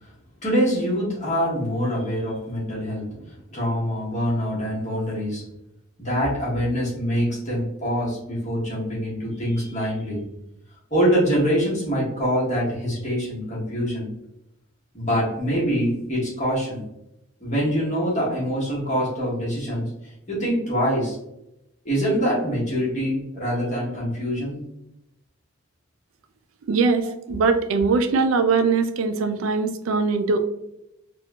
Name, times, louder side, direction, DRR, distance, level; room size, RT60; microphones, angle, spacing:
voice 1, 0.4-5.5 6.0-10.3 10.9-14.1 14.9-16.8 17.4-21.2 21.8-24.6 27.0-27.1, equal, 35° left, -7 dB, 1.4 m, -25 dB
voice 2, 26.7-30.4, right 4 dB, 80° right, 7 dB, 0.4 m, -21 dB
3.5 x 2.4 x 2.2 m, 0.84 s
head